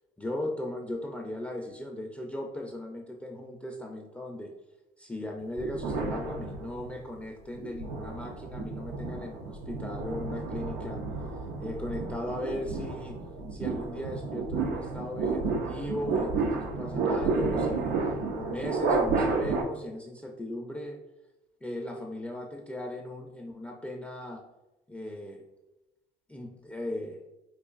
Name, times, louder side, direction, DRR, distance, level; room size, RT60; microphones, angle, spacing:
voice 1, 0.2-4.5 5.0-11.0 11.6-13.2 13.5-17.9 18.3-21.0 21.6-24.4 24.9-25.4 26.3-27.2, left 1 dB, 10° left, 0 dB, 0.3 m, -37 dB
sound 1, 5.6-7.0 7.5-19.6, right 4 dB, 90° right, 0.5 m, -31 dB
4.5 x 2.5 x 2.4 m, 0.97 s
cardioid pair, 110°, 17 cm